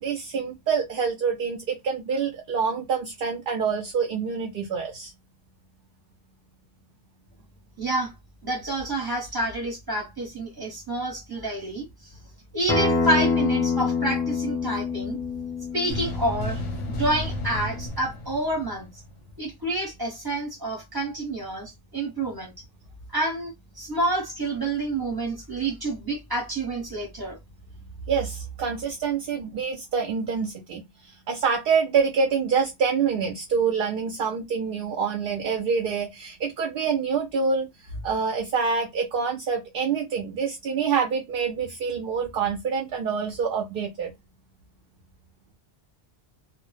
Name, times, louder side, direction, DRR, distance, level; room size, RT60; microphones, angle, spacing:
voice 1, 0.0-5.1 28.1-44.1, right 6 dB, 60° right, 0.7 m, -26 dB
voice 2, 7.8-8.1 8.4-11.9 12.5-15.2 15.7-16.6 17.0-18.9 19.4-22.5 23.1-27.4, right 2 dB, 20° right, 0.8 m, -28 dB
Acoustic guitar, 12.7-17.9, left 4 dB, 5° left, 0.5 m, -27 dB
sound 1, 15.9-19.3, left 1 dB, 45° left, 0.6 m, -33 dB
2.0 x 2.0 x 3.0 m
omnidirectional pair, 1.2 m